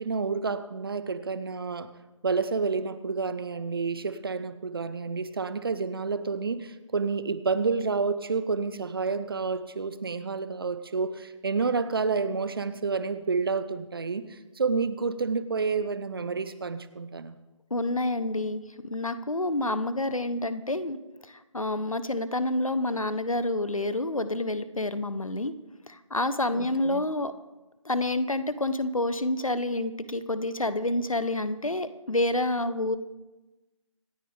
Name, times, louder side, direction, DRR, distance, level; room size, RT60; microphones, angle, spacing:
voice 1, 0.0-1.9 2.2-14.2 14.6-17.4 26.5-27.0, right 4 dB, 45° right, 13 dB, 0.9 m, -29 dB
voice 2, 17.7-21.0 21.5-25.5 25.9-27.3 27.8-33.0, left 2 dB, 85° left, 13 dB, 1.0 m, -28 dB
26.0 x 9.0 x 3.5 m, 1.1 s
figure-of-eight pair, 155°, 17 cm